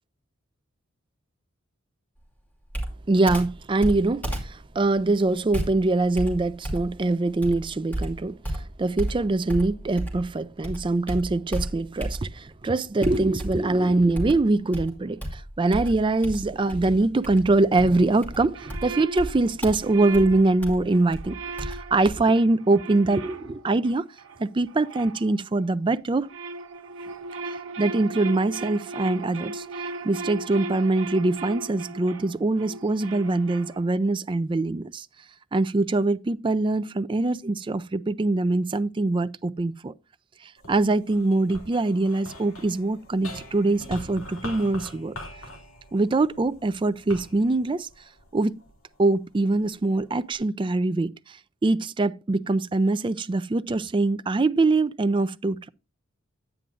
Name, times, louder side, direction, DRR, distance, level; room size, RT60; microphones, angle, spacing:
Computer keyboard, 2.7-10.3 10.6-12.5 13.0-13.8 14.1-22.1, right 1 dB, 10° left, 2.6 m, -33 dB
voice 1, 3.1-24.1 24.4-26.3 27.8-35.1 35.5-39.9 40.4-45.1 45.9-47.9 48.3-48.6 49.0-55.7, right 2 dB, 25° right, 0.4 m, -23 dB
sound 1, 18.5-25.8 26.1-34.1, right 3 dB, 65° right, 1.1 m, -38 dB
sound 2, 40.6-49.0 49.6-50.4, left 1 dB, 70° left, 2.9 m, -43 dB
9.8 x 9.1 x 2.5 m
head